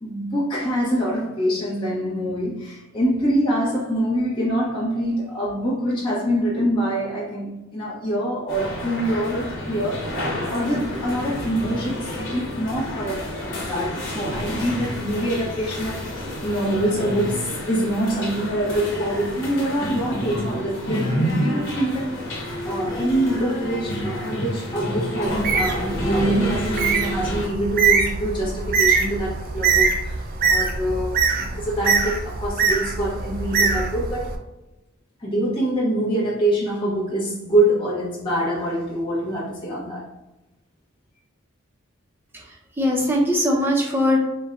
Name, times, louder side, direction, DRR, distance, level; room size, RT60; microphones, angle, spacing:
voice 1, 0.0-10.1 10.5-22.2 22.6-34.4 35.2-40.0, right 1 dB, 25° left, -7 dB, 0.9 m, -25 dB
sound 1, 8.5-27.5, equal, 60° left, 1.1 m, -29 dB
Bird, 25.3-34.3, right 5 dB, 45° right, 0.4 m, -23 dB
voice 2, 42.3-44.2, left 1 dB, 10° right, -1 dB, 0.6 m, -21 dB
4.3 x 2.2 x 3.7 m, 0.95 s
head